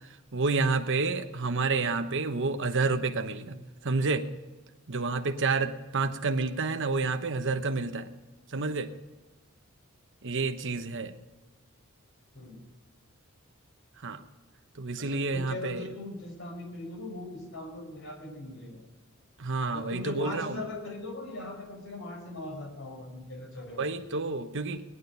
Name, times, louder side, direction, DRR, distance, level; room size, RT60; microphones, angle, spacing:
voice 1, 0.3-3.6 3.8-4.3 4.9-8.1 8.5-8.9 10.2-11.1 14.0-14.2 14.7-15.9 19.4-20.6 23.8-24.8, right 3 dB, 60° right, 7 dB, 1.1 m, -29 dB
voice 2, 15.0-18.8 19.7-23.8, left 2 dB, 65° left, 2 dB, 4.8 m, -40 dB
18.0 x 11.0 x 5.5 m, 1.1 s
head